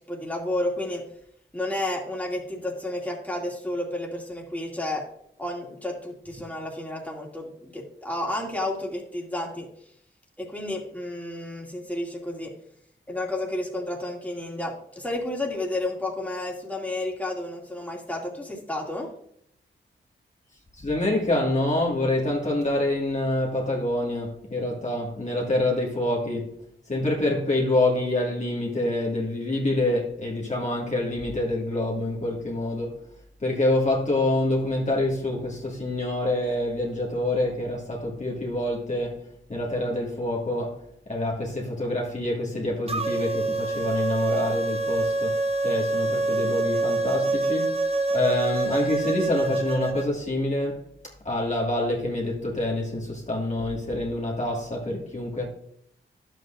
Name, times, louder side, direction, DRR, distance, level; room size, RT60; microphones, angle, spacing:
voice 1, 0.1-1.0 1.5-5.1 5.4-9.7 10.4-12.5 13.1-19.1, left 1 dB, 10° left, 2.3 m, -31 dB
voice 2, 20.8-26.6 26.9-33.0 33.4-50.8 51.2-55.5, left 1 dB, 35° left, 1.9 m, -26 dB
sound 1, 42.9-50.1, right 2 dB, 30° right, 0.9 m, -26 dB
11.0 x 7.8 x 2.5 m
cardioid pair, 60°, 20 cm